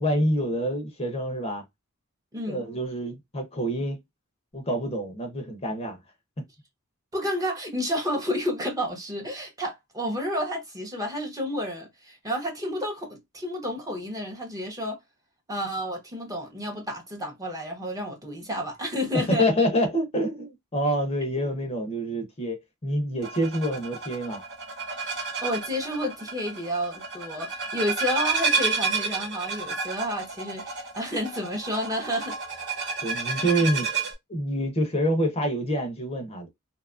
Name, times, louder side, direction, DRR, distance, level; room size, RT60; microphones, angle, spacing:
voice 1, 0.0-1.6 2.5-4.0 4.5-6.0 19.1-24.4 33.0-33.9 34.3-36.5, equal, 30° left, 0.6 m, -27 dB
voice 2, 2.3-2.6 7.1-15.0 15.5-19.5 25.2-32.4, equal, 15° right, 0.7 m, -30 dB
sound 1, 23.2-34.1, right 5 dB, 55° right, 1.0 m, -31 dB
2.8 x 2.3 x 2.4 m
head